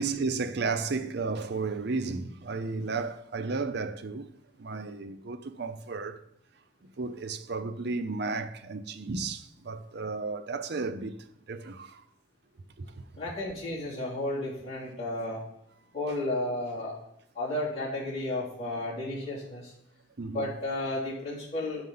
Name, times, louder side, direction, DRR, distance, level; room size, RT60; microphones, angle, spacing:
voice 1, 0.0-4.3 4.6-6.2 7.0-11.2 11.5-12.0 12.8-12.9 20.2-20.5, right 4 dB, 65° right, 0.7 m, -33 dB
voice 2, 13.1-15.4 15.9-16.9 17.3-19.7 20.3-21.8, left 1 dB, 35° left, 3.2 m, -33 dB
8.0 x 6.6 x 5.6 m
head